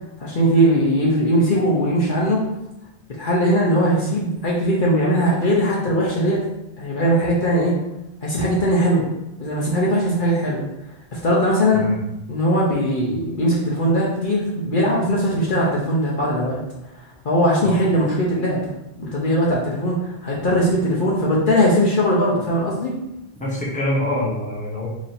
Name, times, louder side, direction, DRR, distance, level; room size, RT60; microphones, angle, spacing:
voice 1, 0.2-2.4 3.2-6.4 6.8-7.7 8.2-9.1 9.4-10.6 11.1-11.8 12.3-16.6 17.2-18.6 19.0-22.9, equal, 55° left, -5 dB, 0.8 m, -19 dB
voice 2, 23.4-24.9, left 1 dB, 10° left, -5 dB, 0.8 m, -25 dB
3.1 x 2.6 x 4.1 m, 0.90 s
omnidirectional pair, 1.1 m